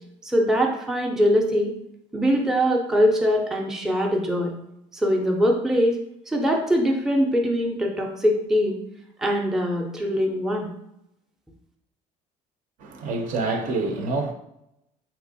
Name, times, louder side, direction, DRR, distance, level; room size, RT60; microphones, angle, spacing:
voice 1, 0.2-1.7 2.1-4.5 5.0-6.0 6.3-8.8 9.2-10.7, equal, 5° right, 0.4 m, -22 dB
voice 2, 12.8-14.3, right 3 dB, 60° right, 0.6 m, -27 dB
3.4 x 2.9 x 2.6 m
cardioid pair, 120°, 15 cm